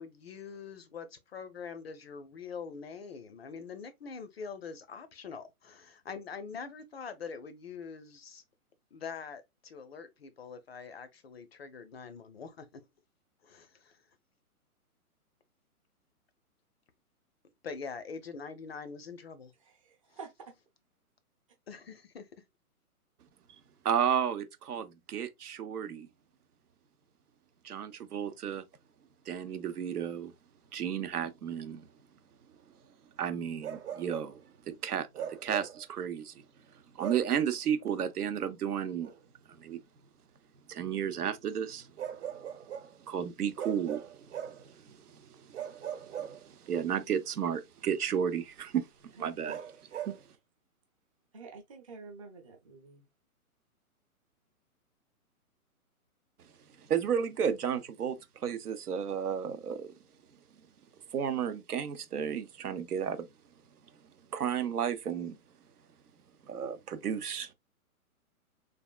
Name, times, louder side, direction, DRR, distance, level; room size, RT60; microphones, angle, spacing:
voice 1, 0.0-8.4 8.9-12.8 13.4-14.0 17.6-19.5 21.7-22.3, left 5 dB, 45° left, 0.4 m, -44 dB
voice 2, 19.6-20.6 49.2-49.7 51.3-53.0, right 4 dB, 25° right, 0.5 m, -49 dB
voice 3, 23.8-26.1 27.6-28.6 29.3-30.3 30.7-31.9 33.2-34.4 34.7-36.3 36.9-39.1 39.6-39.8 40.7-41.9 43.0-49.6 50.1-50.2 56.9-59.9 61.1-63.3 64.3-65.4 66.5-67.5, right 8 dB, 80° right, 0.7 m, -33 dB
Bark, 33.6-34.4 35.1-35.8 37.0-37.3 39.0-39.2 42.0-42.9 43.6-44.7 45.5-46.8 49.5-50.2, right 9 dB, 50° right, 0.9 m, -40 dB
3.4 x 2.3 x 2.3 m
figure-of-eight pair, 130°, 45 cm